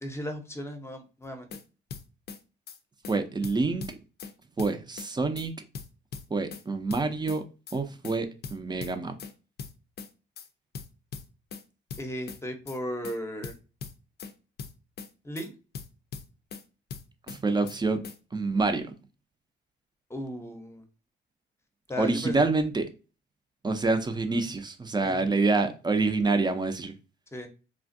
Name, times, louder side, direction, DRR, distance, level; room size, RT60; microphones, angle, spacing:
voice 1, 0.0-1.5 12.0-13.5 15.2-15.5 20.1-20.9 21.9-22.4 25.0-25.5 27.3-27.5, equal, 15° left, 0.7 m, -36 dB
sound 1, 1.2-1.6 1.9-2.4 2.7-2.8 3.0-3.2 3.4-4.3 4.6-5.1 5.4-5.5 5.7-6.6 6.9-7.4 7.7-7.8 8.0-8.2 8.4-9.3 9.6-10.1 10.4-10.5 10.7-11.6 11.9-12.4 12.7-12.8 13.0-13.2 13.4-14.3 14.6-15.1 15.4-15.5 15.7-16.6 16.9-17.4 17.7-17.8 18.0-18.2, left 6 dB, 55° left, 0.5 m, -40 dB
voice 2, 3.1-3.8 4.6-5.5 6.3-7.4 7.7-9.1 17.3-18.0 18.3-18.9 22.0-22.9 23.6-26.9, right 3 dB, 20° right, 0.5 m, -27 dB
3.4 x 2.5 x 2.5 m
cardioid pair, 90°, 20 cm